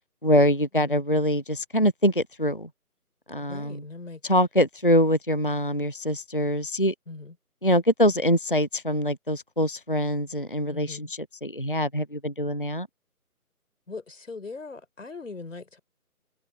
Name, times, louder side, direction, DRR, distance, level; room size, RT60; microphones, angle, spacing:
voice 1, 0.2-2.7 3.3-3.8 4.3-6.9 7.6-11.1 11.4-12.9, equal, 40° left, 0.4 m, -24 dB
voice 2, 3.4-4.2 7.1-7.4 10.7-11.1 13.9-15.8, left 3 dB, 55° left, 4.6 m, -40 dB
figure-of-eight pair, 155°, 45 cm